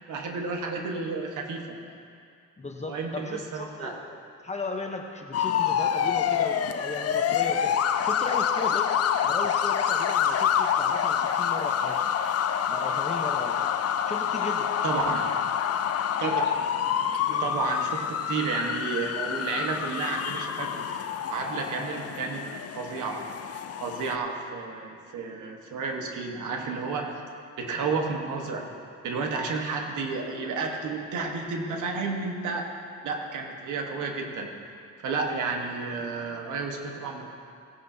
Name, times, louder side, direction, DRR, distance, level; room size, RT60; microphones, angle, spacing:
voice 1, 0.1-2.0 2.9-4.0 14.8-15.2 16.2-16.6 17.4-22.5 22.8-23.2 23.5-27.1 27.6-28.7 29.0-32.7 33.0-34.5 35.0-37.3, right 4 dB, 85° right, 2 dB, 1.4 m, -31 dB
voice 2, 2.6-4.0 4.4-7.7 8.0-8.9 9.2-12.1 12.7-13.6 14.1-14.7 17.3-17.5, left 2 dB, 25° left, 2 dB, 1.0 m, -36 dB
sound 1, 5.3-24.2, left 8 dB, 55° left, 0.6 m, -27 dB
17.0 x 10.0 x 2.8 m, 2.3 s
cardioid pair, 90°, 30 cm